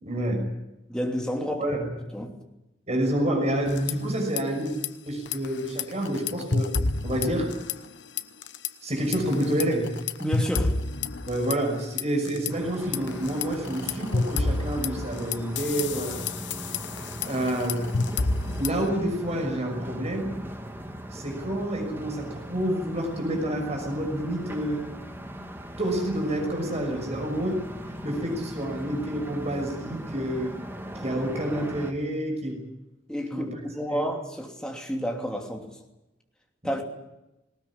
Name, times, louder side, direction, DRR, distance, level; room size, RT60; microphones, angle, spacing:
voice 1, 0.0-0.5 1.6-1.9 2.9-4.8 5.0-6.7 7.0-7.6 8.8-9.9 11.3-16.2 17.3-17.9 18.6-20.3 21.1-24.8 25.4-25.5 25.8-27.6 28.0-30.5 30.9-32.6 33.3-33.6 33.9-34.1 36.6-36.7, right 1 dB, 35° right, 6.1 m, -28 dB
voice 2, 0.9-1.8 2.1-2.3 10.2-10.8 33.1-35.7 36.6-36.9, equal, 5° left, 2.9 m, -30 dB
sound 1, 3.7-4.4 4.7-4.9 5.3-8.7 9.1-12.5 12.9-18.9, left 3 dB, 70° left, 1.0 m, -29 dB
sound 2, 12.5-31.9, equal, 10° right, 2.0 m, -39 dB
19.5 x 18.5 x 10.0 m
head